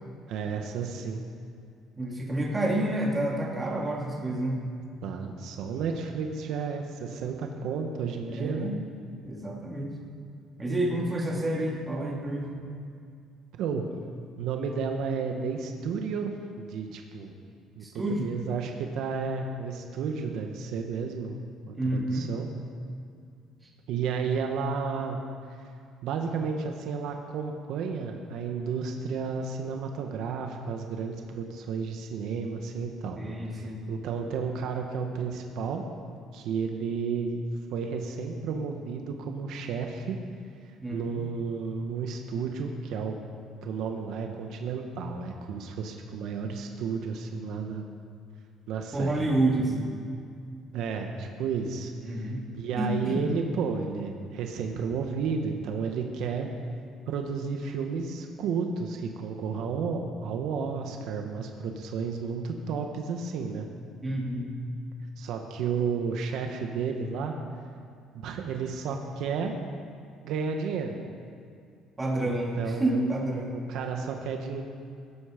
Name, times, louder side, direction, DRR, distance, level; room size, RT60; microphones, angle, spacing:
voice 1, 0.3-1.2 5.0-8.7 13.6-13.8 14.4-16.3 16.6-17.3 17.7-21.4 21.7-22.5 23.9-25.2 26.0-33.2 33.5-35.8 36.3-37.4 37.7-40.2 40.9-43.2 43.6-47.8 48.7-49.1 50.7-56.5 57.1-63.7 65.2-67.3 68.1-69.5 70.2-71.0 72.2-73.1 73.5-74.6, right 5 dB, 70° right, 3 dB, 1.3 m, -32 dB
voice 2, 2.0-4.6 8.3-8.7 9.2-9.9 10.6-12.5 17.8-18.3 21.7-22.3 33.1-33.8 40.8-41.2 48.9-49.9 52.0-52.4 52.8-53.3 64.0-64.5 72.0-73.6, right 1 dB, 15° right, -2 dB, 2.5 m, -29 dB
17.0 x 13.0 x 5.2 m, 2.4 s
cardioid pair, 140°, 0 cm